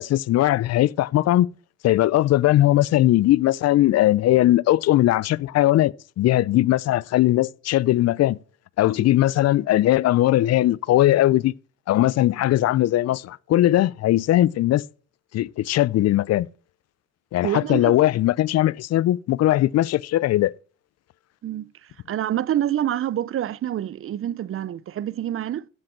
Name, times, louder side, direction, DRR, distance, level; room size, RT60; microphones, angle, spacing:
voice 1, 0.0-1.5 1.8-8.4 8.8-11.5 11.9-14.8 15.3-16.5 17.3-20.5, left 14 dB, 60° left, 0.4 m, -19 dB
voice 2, 17.4-17.9 21.4-25.7, right 11 dB, 45° right, 0.5 m, -27 dB
12.0 x 7.7 x 4.4 m
cardioid pair, 90°, 30 cm